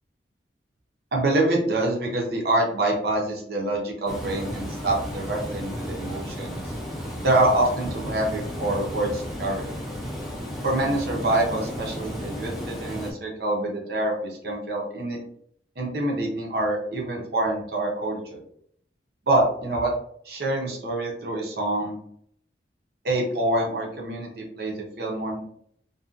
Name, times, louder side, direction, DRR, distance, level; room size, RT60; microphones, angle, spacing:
voice 1, 1.1-6.6 7.2-9.6 10.6-14.1 14.4-15.2 15.8-18.4 19.3-19.9 20.3-22.0 23.0-25.4, right 1 dB, 60° right, -1 dB, 0.6 m, -26 dB
Water, 4.1-13.1, equal, ahead, 0.5 m, -33 dB
2.6 x 2.2 x 2.4 m, 0.65 s
head